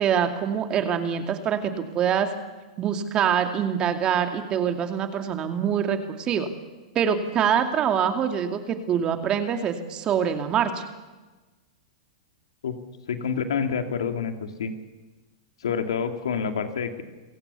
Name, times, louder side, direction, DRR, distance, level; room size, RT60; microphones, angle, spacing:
voice 1, 0.0-2.3 2.8-6.5 6.9-10.9, right 8 dB, 30° right, 6 dB, 2.5 m, -25 dB
voice 2, 13.1-14.7 15.6-17.0, left 6 dB, 75° left, 6 dB, 2.5 m, -28 dB
28.0 x 17.5 x 7.0 m, 1.2 s
hypercardioid pair, 110°, 3 cm